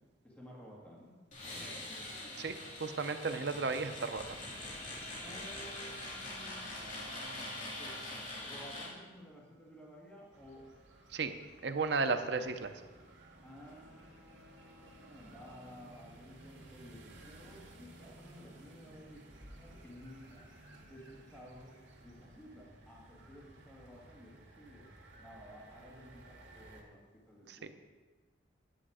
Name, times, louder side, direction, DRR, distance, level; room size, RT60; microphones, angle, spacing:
voice 1, 0.2-1.9 5.2-8.0 8.4-10.7 12.1-12.5 13.4-20.5 20.9-21.7 22.0-24.9 25.2-27.7, equal, 5° left, -4 dB, 1.9 m, -54 dB
sound 1, 1.3-8.9, left 1 dB, 45° left, 2.8 m, -43 dB
voice 2, 2.4-4.2 11.1-11.4 11.6-12.7 27.5-27.6, right 4 dB, 65° right, 9 dB, 0.7 m, -34 dB
sound 2, 10.3-26.8, right 1 dB, 85° right, 2.0 m, -56 dB
9.9 x 8.9 x 4.9 m, 1.3 s
head